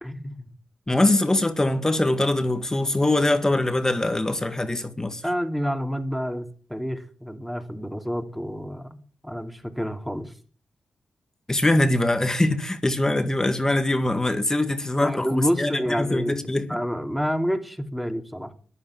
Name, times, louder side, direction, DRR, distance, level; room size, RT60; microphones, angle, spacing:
voice 1, 0.0-0.5 5.2-10.3 15.0-16.4 16.7-18.5, equal, ahead, 2.9 m, -29 dB
voice 2, 0.9-5.2 11.5-16.8, left 1 dB, 20° left, 1.8 m, -23 dB
13.0 x 11.0 x 7.5 m
cardioid pair, 65°, 3 cm